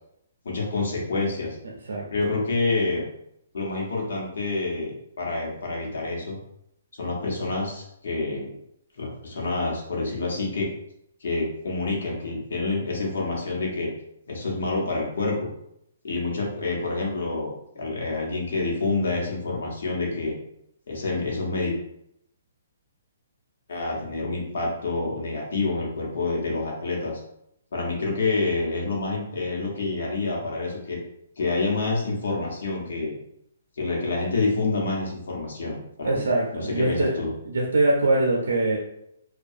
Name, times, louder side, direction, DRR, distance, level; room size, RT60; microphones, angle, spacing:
voice 1, 0.4-1.6 2.1-3.0 3.5-6.4 7.0-8.5 9.0-10.7 11.2-13.9 14.3-15.5 16.0-20.3 20.9-21.7 23.7-27.2 27.7-31.0 31.4-33.2 33.8-37.3, left 3 dB, 70° left, -2 dB, 0.9 m, -28 dB
voice 2, 36.0-37.2 37.5-38.8, right 2 dB, 90° right, -1 dB, 0.5 m, -23 dB
2.6 x 2.2 x 2.4 m, 0.76 s
hypercardioid pair, 165°, 0 cm